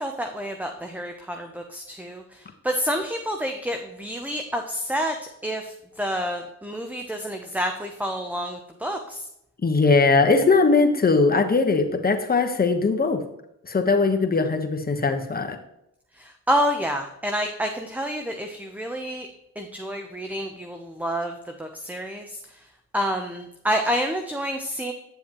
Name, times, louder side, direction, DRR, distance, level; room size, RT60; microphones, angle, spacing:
voice 1, 0.0-5.1 5.4-9.2 16.2-19.3 19.6-22.6 22.9-24.9, equal, 5° right, 4 dB, 0.8 m, -28 dB
voice 2, 9.6-13.2 13.6-15.6, left 4 dB, 25° left, 5 dB, 1.2 m, -20 dB
9.4 x 7.0 x 3.1 m, 0.80 s
cardioid pair, 75°, 35 cm